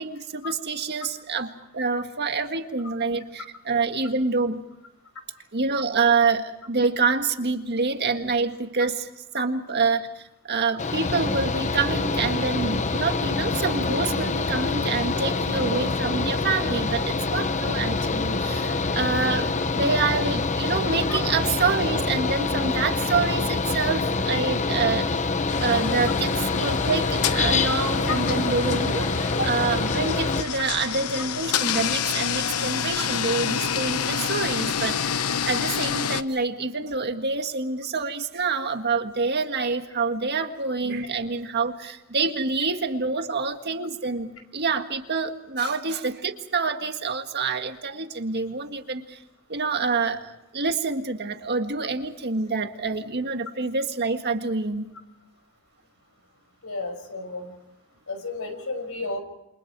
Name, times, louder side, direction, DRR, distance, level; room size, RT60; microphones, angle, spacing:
voice 1, 0.0-4.6 5.5-9.1 9.3-25.1 25.6-49.2 49.5-54.9, right 4 dB, 50° right, 6 dB, 1.9 m, -27 dB
Mechanical fan, 10.8-30.4, left 3 dB, 35° left, 1.0 m, -26 dB
sound 1, 25.5-36.2, left 7 dB, 85° left, 1.0 m, -28 dB
voice 2, 56.6-57.5 58.1-59.2, left 3 dB, 70° left, 7 dB, 5.6 m, -32 dB
29.0 x 26.0 x 4.8 m, 0.88 s
head